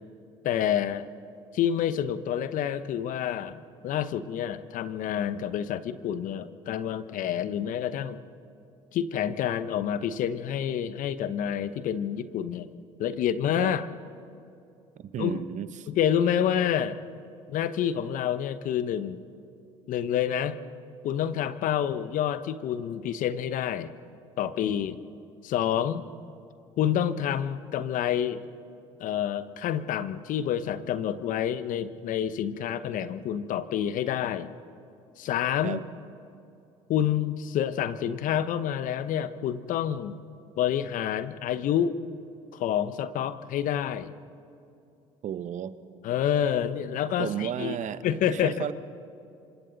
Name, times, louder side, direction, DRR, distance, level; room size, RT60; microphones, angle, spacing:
voice 1, 0.4-1.1 1.5-8.2 8.9-12.7 13.0-13.9 15.2-15.4 15.9-17.0 17.5-19.2 19.9-20.6 21.0-23.9 24.4-25.0 25.4-26.1 26.8-28.4 29.0-34.5 35.2-35.8 36.9-40.2 40.6-42.0 42.5-44.1 46.0-47.8 48.0-48.7, left 9 dB, 65° left, 13 dB, 0.9 m, -28 dB
voice 2, 15.0-15.9 35.6-35.8 45.2-45.8 47.2-48.7, right 9 dB, 55° right, 13 dB, 1.0 m, -33 dB
26.5 x 25.0 x 4.0 m, 2.7 s
hypercardioid pair, 65°, 15 cm